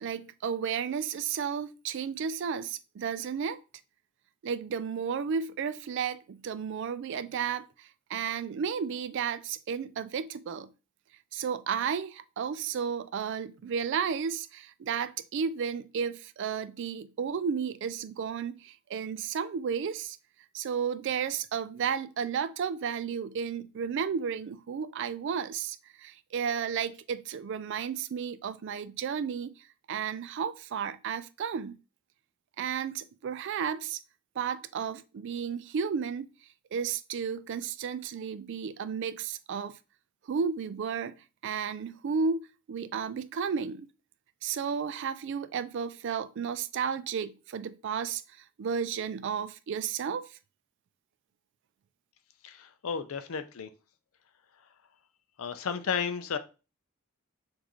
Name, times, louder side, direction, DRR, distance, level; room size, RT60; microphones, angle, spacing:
voice 1, 0.0-3.6 4.4-10.7 11.3-20.2 20.5-29.5 29.9-31.8 32.6-34.0 34.4-36.3 36.7-39.7 40.3-41.1 41.4-43.9 44.4-48.2 48.6-50.2, right 6 dB, 55° right, 0.3 m, -33 dB
voice 2, 52.4-53.7 55.4-56.4, left 6 dB, 75° left, 0.5 m, -33 dB
6.1 x 2.6 x 3.0 m
head